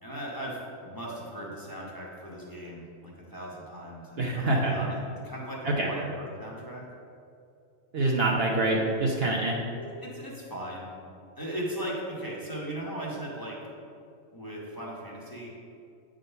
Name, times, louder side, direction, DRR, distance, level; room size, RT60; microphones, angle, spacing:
voice 1, 0.0-5.0 5.2-6.8 9.7-10.9 11.4-13.6 14.3-15.5, right 1 dB, 15° left, -5 dB, 1.2 m, -38 dB
voice 2, 4.2-4.7 5.6-5.9 7.9-9.6, right 2 dB, 55° right, -2 dB, 0.9 m, -25 dB
9.1 x 3.8 x 5.5 m, 2.5 s
omnidirectional pair, 1.4 m